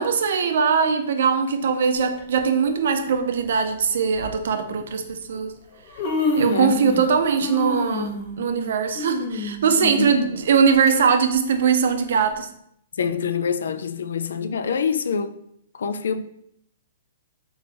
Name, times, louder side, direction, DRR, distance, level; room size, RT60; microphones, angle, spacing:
voice 1, 0.0-5.5 6.4-12.5, right 6 dB, 65° right, 0.5 m, -21 dB
Human voice, 2.2-2.4 3.4-3.5 4.1-4.3 5.3-5.4 5.7-7.1 7.4-10.9 11.3-11.4 12.3-12.4, left 2 dB, 40° left, 1.0 m, -28 dB
voice 2, 10.0-10.3 13.0-15.4 15.7-16.2, left 6 dB, 80° left, 0.3 m, -25 dB
3.9 x 3.3 x 3.4 m
hypercardioid pair, 160°, 0 cm